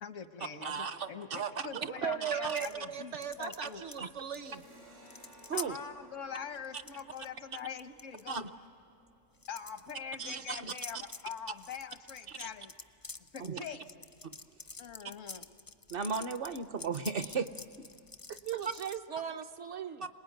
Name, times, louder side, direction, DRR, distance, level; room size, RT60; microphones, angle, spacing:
voice 1, 0.0-3.8 5.5-8.4 9.5-12.7 13.3-14.1 14.8-15.5, left 7 dB, 85° left, 9 dB, 1.4 m, -43 dB
voice 2, 0.6-1.7 2.2-2.6 4.0-4.1 5.5-5.8 8.3-8.5 10.2-10.7 12.3-12.5 13.4-13.6 15.9-17.6 18.3-18.4 20.0-20.1, right 5 dB, 55° right, 11 dB, 0.9 m, -36 dB
voice 3, 1.7-4.6 18.4-20.0, right 8 dB, 70° right, 6 dB, 1.2 m, -38 dB
sound 1, 2.5-2.8 3.2-4.4 4.6-4.7 5.0-5.7 6.6-7.3 7.6-8.4 9.4-9.9 10.7-19.0, left 3 dB, 30° left, 0.4 m, -47 dB
sound 2, 4.4-11.6, right 1 dB, 90° right, 7.5 m, -60 dB
26.0 x 20.0 x 9.2 m, 2.4 s
omnidirectional pair, 1.3 m